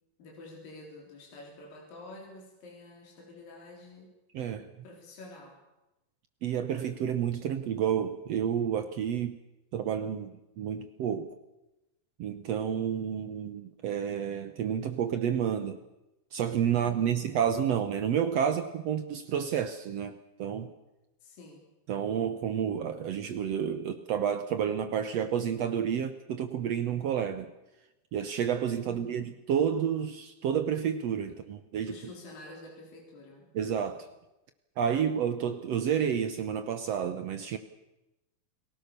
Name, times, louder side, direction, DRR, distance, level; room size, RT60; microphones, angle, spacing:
voice 1, 0.2-4.1 4.8-5.6 16.8-17.3 21.2-21.7 28.8-29.3 31.9-33.5, left 2 dB, 65° left, 5.6 m, -49 dB
voice 2, 4.3-4.7 6.4-9.4 9.7-11.3 12.2-15.8 16.3-20.7 21.9-27.5 28.1-32.0 33.5-34.1 34.8-37.6, right 8 dB, 75° right, 1.5 m, -30 dB
30.0 x 18.5 x 6.8 m
omnidirectional pair, 4.4 m